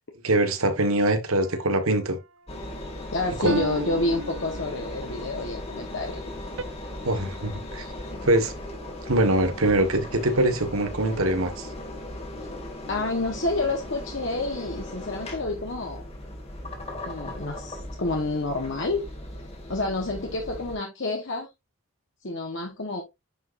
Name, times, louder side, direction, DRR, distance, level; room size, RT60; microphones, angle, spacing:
voice 1, 0.2-2.2 3.4-3.6 7.0-7.9 8.2-8.5 9.1-11.7, right 1 dB, 85° right, 1.4 m, -23 dB
sound 1, 1.4-2.1 3.5-5.1 6.6-6.7, right 3 dB, 70° right, 0.6 m, -35 dB
Engine, 2.5-20.8, left 1 dB, 30° left, 1.7 m, -38 dB
voice 2, 3.1-6.2 12.9-16.1 17.1-19.0 19.7-21.5 22.2-23.0, left 2 dB, 60° left, 1.1 m, -29 dB
9.2 x 5.1 x 2.5 m
head